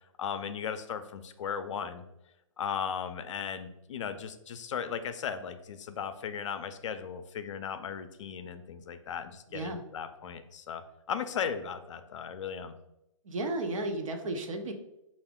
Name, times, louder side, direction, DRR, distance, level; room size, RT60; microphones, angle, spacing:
voice 1, 0.2-2.0 2.6-10.8 11.1-12.7, left 7 dB, 60° left, 9 dB, 0.5 m, -36 dB
voice 2, 9.5-9.8 13.2-14.7, right 2 dB, 70° right, 4 dB, 0.8 m, -33 dB
4.8 x 2.5 x 3.5 m, 0.88 s
hypercardioid pair, 135°, 17 cm